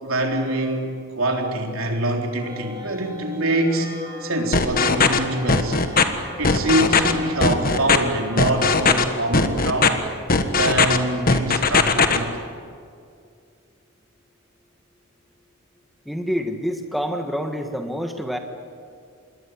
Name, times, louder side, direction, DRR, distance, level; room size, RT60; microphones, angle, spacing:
voice 1, 0.0-3.9 4.2-5.8 6.4-10.0 10.6-12.4, right 1 dB, 75° right, 2 dB, 3.8 m, -24 dB
sound 1, 2.4-8.8, left 1 dB, 20° right, 7.4 m, -38 dB
sound 2, 4.5-5.2 5.5-6.0 6.4-7.1 7.4-8.0 8.4-9.0 9.3-9.9 10.3-11.0 11.3-12.2, left 4 dB, 40° left, 1.5 m, -17 dB
voice 2, 16.0-18.4, equal, ahead, 4 dB, 1.6 m, -27 dB
26.5 x 21.5 x 9.7 m, 2.3 s
head